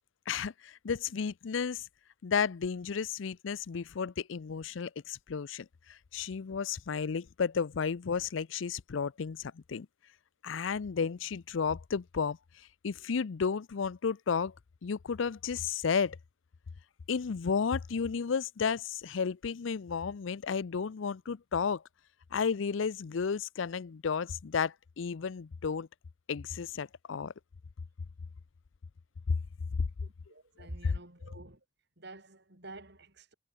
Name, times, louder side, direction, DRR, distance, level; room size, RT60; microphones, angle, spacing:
voice 1, 0.3-1.9 2.2-9.9 10.4-14.5 14.8-16.2 17.1-21.8 22.3-25.9 26.3-27.3 29.3-29.4 30.8-30.9, left 6 dB, 75° left, 0.5 m, -33 dB
voice 2, 30.0-31.6 32.0-33.3, right 1 dB, 60° right, 5.6 m, -49 dB
head